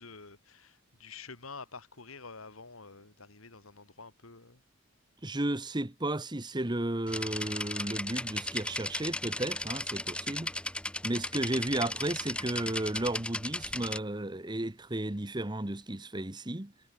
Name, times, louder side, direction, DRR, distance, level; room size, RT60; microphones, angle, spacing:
voice 1, 0.0-4.6, left 4 dB, 90° left, 2.9 m, -48 dB
voice 2, 5.2-10.5 11.0-16.7, right 1 dB, 20° right, 1.2 m, -33 dB
sound 1, 7.1-14.0, left 1 dB, 5° left, 1.3 m, -36 dB
head